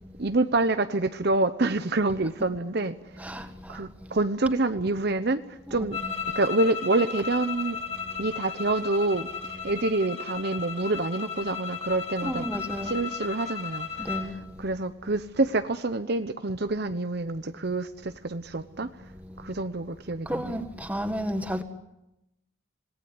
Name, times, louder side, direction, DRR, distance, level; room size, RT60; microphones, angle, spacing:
voice 1, 0.2-6.0 6.3-7.8 8.2-12.5 12.8-18.9 19.4-20.7, right 2 dB, 50° right, 0.8 m, -27 dB
voice 2, 3.2-3.8 5.7-6.1 12.2-12.9 14.0-14.5 20.3-21.6, equal, 5° right, 1.7 m, -32 dB
sound 1, 5.9-14.3, left 6 dB, 30° left, 3.1 m, -35 dB
26.5 x 18.5 x 9.6 m
head